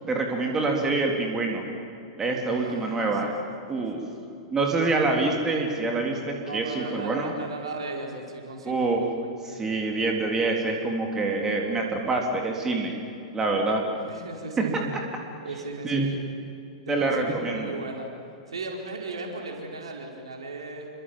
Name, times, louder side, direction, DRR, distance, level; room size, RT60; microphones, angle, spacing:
voice 1, 0.1-1.6 2.2-3.3 3.7-4.0 4.5-7.3 8.6-9.1 9.4-12.9 13.3-13.8 14.6-15.0 15.8-16.1 16.9-17.8, right 3 dB, 15° right, 1 dB, 3.7 m, -26 dB
voice 2, 2.5-3.3 3.9-4.1 6.4-9.1 13.9-14.9 15.4-16.2 16.9-18.1 18.5-20.9, right 2 dB, 70° right, 1 dB, 5.0 m, -37 dB
28.5 x 25.0 x 7.6 m, 2.7 s
figure-of-eight pair, 100°, 3 cm